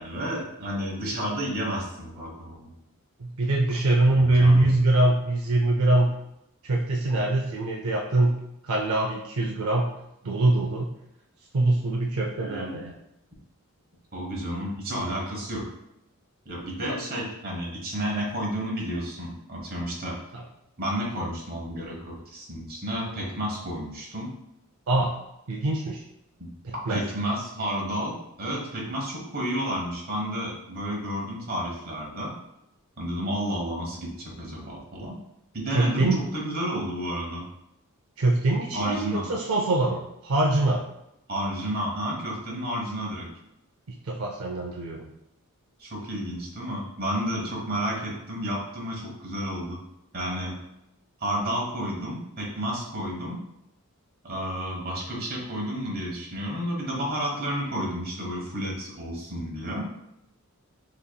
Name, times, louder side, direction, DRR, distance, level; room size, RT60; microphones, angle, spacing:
voice 1, 0.0-2.7 4.2-4.7 12.4-12.8 14.1-15.6 16.4-20.2 20.8-24.3 26.4-26.5 26.9-32.3 33.0-35.2 35.5-37.5 38.7-39.2 41.3-43.3 45.8-49.8 50.1-50.5 51.2-53.4 54.2-59.9, equal, 45° right, -2 dB, 1.1 m, -31 dB
voice 2, 3.2-6.2 6.6-9.9 10.2-10.9 11.5-12.9 20.3-20.4 24.9-25.1 25.5-26.0 26.6-27.0 35.7-36.2 38.2-40.8 43.9-45.0, right 2 dB, 70° right, 0 dB, 0.5 m, -23 dB
5.5 x 2.9 x 2.2 m, 0.84 s
head